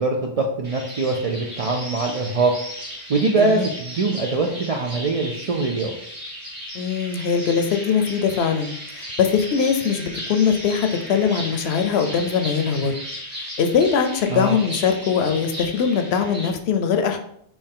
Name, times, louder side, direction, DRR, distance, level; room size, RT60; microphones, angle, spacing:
voice 1, 0.0-2.5 3.1-5.9 14.3-14.6, right 3 dB, 55° right, 1 dB, 0.4 m, -22 dB
sound 1, 0.6-16.5, equal, 85° right, 2.0 m, -36 dB
voice 2, 3.4-3.7 6.7-13.0 13.6-17.2, left 6 dB, 75° left, 6 dB, 0.8 m, -21 dB
4.5 x 3.1 x 3.6 m, 0.69 s
omnidirectional pair, 1.1 m